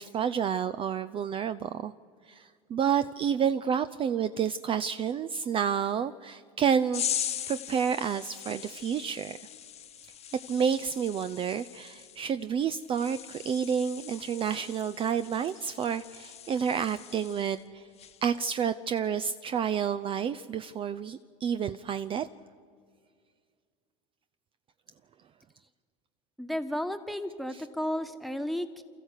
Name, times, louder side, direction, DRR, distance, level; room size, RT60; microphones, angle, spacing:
voice 1, 0.0-1.9 2.3-7.0 7.5-9.4 10.5-17.9 18.2-22.3 27.5-27.6, right 7 dB, 35° right, 12 dB, 0.5 m, -29 dB
sound 1, 6.9-17.6 18.0-18.3, left 10 dB, 40° left, 1.1 m, -40 dB
voice 2, 26.4-28.8, left 1 dB, ahead, 9 dB, 1.4 m, -33 dB
28.5 x 14.0 x 8.2 m, 2.1 s
hypercardioid pair, 95°, 16 cm